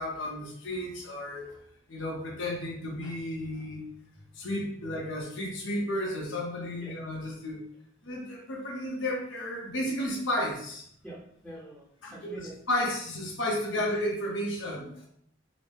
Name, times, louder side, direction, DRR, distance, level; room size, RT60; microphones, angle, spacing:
voice 1, 0.0-1.5 1.9-3.8 4.4-7.6 8.0-10.8 12.0-15.1, left 1 dB, 80° left, -2 dB, 0.9 m, -33 dB
voice 2, 11.0-12.9, right 1 dB, ahead, -6 dB, 0.7 m, -46 dB
3.9 x 2.1 x 3.4 m, 0.66 s
head